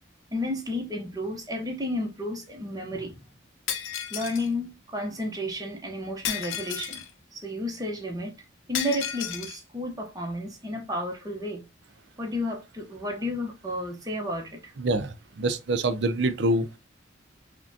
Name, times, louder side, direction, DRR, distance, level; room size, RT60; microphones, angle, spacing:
voice 1, 0.3-3.2 4.1-7.1 7.3-8.3 8.7-11.7 12.2-14.7, left 1 dB, 20° right, 0.8 m, -32 dB
Shatter, 3.7-4.5 6.2-7.1 8.7-9.6, left 9 dB, 80° left, 0.6 m, -32 dB
voice 2, 14.8-16.7, right 1 dB, 60° right, 0.4 m, -25 dB
4.9 x 2.2 x 2.7 m
head